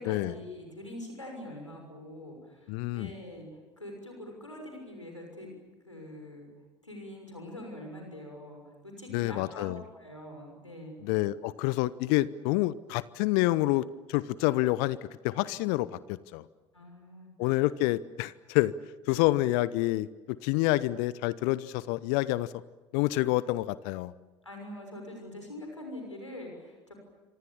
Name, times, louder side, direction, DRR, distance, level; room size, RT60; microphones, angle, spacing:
voice 1, 0.0-5.5 5.8-6.5 6.8-11.0 16.7-17.6 24.4-26.9, left 1 dB, 90° left, 2 dB, 6.3 m, -44 dB
voice 2, 2.7-3.1 9.1-9.8 11.0-15.0 15.2-16.4 17.4-18.7 19.1-22.5 22.9-24.1, left 18 dB, 60° left, 19 dB, 0.8 m, -28 dB
29.5 x 25.5 x 7.2 m, 1.3 s
figure-of-eight pair, 60°, 15 cm